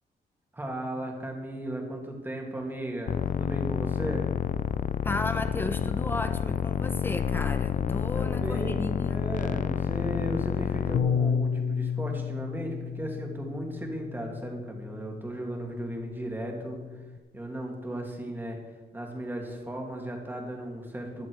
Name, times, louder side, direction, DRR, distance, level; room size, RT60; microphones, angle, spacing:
voice 1, 0.5-4.3 8.1-16.8 17.3-18.6 18.9-21.3, right 1 dB, 10° right, 1 dB, 2.5 m, -36 dB
sound 1, 3.1-11.0, left 8 dB, 50° left, 0.4 m, -29 dB
voice 2, 5.0-9.2, left 2 dB, 10° left, 9 dB, 1.0 m, -34 dB
Bass guitar, 10.9-17.2, left 7 dB, 80° left, 0.7 m, -32 dB
15.5 x 11.5 x 4.8 m, 1.3 s
wide cardioid pair, 165°, 17 cm